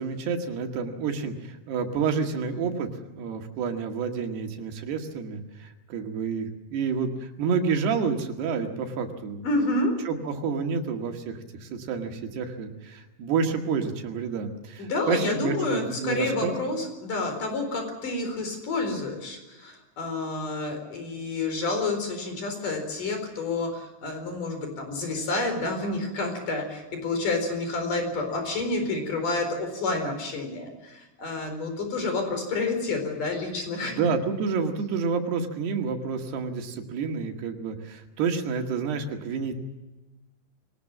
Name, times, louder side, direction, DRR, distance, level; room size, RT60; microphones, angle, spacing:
voice 1, 0.0-9.4 10.1-16.6 33.8-39.5, right 5 dB, 90° right, 4 dB, 4.0 m, -29 dB
voice 2, 9.4-9.9 14.8-34.0, left 3 dB, 55° left, 5 dB, 5.8 m, -29 dB
23.0 x 19.5 x 7.4 m, 1.1 s
omnidirectional pair, 4.5 m